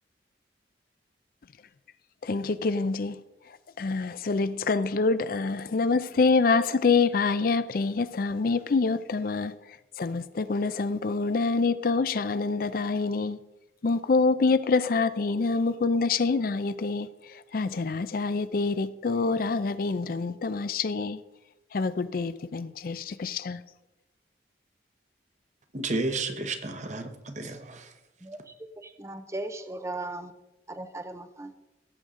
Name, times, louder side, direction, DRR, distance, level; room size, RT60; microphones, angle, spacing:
voice 1, 2.2-3.2 3.8-9.5 10.0-13.4 13.8-17.1 17.5-21.2 21.7-23.6, left 4 dB, 50° left, 0.4 m, -26 dB
voice 2, 25.7-27.9, right 2 dB, 40° right, 1.0 m, -32 dB
voice 3, 28.8-30.3 30.7-31.5, right 2 dB, 15° right, 0.5 m, -37 dB
17.0 x 7.8 x 3.7 m
head